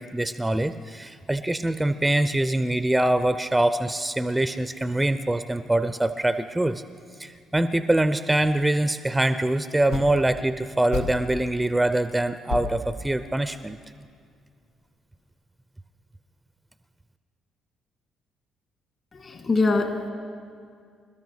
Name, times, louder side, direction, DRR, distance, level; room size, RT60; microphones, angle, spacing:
voice 1, 0.0-6.8 7.2-13.8, right 1 dB, 10° right, 12 dB, 0.5 m, -24 dB
sound 1, 9.9-10.3 10.9-11.5 12.0-12.1 12.5-13.7, left 3 dB, 85° left, 1.3 m, -32 dB
voice 2, 19.1-20.1, left 3 dB, 45° left, 5 dB, 2.1 m, -24 dB
27.0 x 13.0 x 3.3 m, 2.2 s
hypercardioid pair, 45°, 0 cm